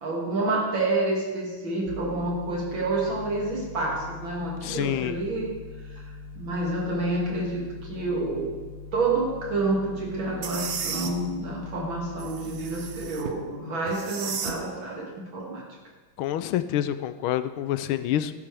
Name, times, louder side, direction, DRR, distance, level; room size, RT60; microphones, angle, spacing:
voice 1, 0.0-5.6 5.9-6.0 6.4-8.6 8.9-15.7, right 2 dB, 65° right, -2 dB, 3.1 m, -28 dB
sound 1, 1.9-13.0, left 3 dB, 55° left, 1.5 m, -42 dB
voice 2, 4.6-5.2 16.2-18.3, left 12 dB, 80° left, 12 dB, 1.4 m, -27 dB
sound 2, 10.4-11.1 12.2-13.4 13.9-14.6, right 6 dB, 85° right, 0.6 m, -34 dB
14.5 x 12.0 x 3.4 m, 1.3 s
omnidirectional pair, 2.3 m